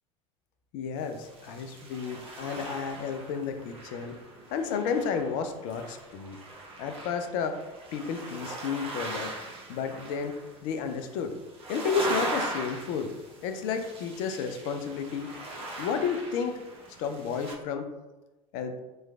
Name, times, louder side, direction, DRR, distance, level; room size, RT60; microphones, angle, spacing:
voice 1, 0.7-4.2 4.5-6.4 6.8-7.6 7.9-9.3 9.7-11.4 11.7-13.1 13.4-15.3 15.8-16.6 17.0-17.9 18.5-18.8, left 6 dB, 50° left, 7 dB, 0.4 m, -32 dB
sound 1, 1.0-17.5, right 2 dB, 30° right, 0.8 m, -40 dB
3.1 x 3.0 x 2.3 m, 1.1 s
figure-of-eight pair, 70°, 18 cm